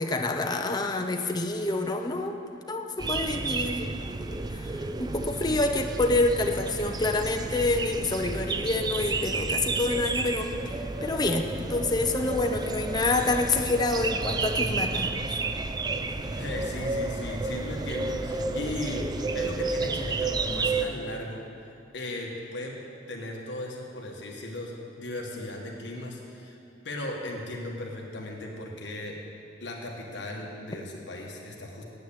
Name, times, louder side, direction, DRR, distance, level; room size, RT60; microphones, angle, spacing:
voice 1, 0.0-2.4 2.7-3.9 4.2-15.4, left 2 dB, 20° left, 4 dB, 0.7 m, -27 dB
sound 1, 3.0-20.9, right 3 dB, 20° right, 0.4 m, -31 dB
voice 2, 16.3-21.4 21.9-22.8 23.1-26.6 26.8-29.1 29.6-31.8, left 1 dB, 65° left, -1 dB, 1.5 m, -37 dB
9.3 x 8.3 x 8.7 m, 2.6 s
head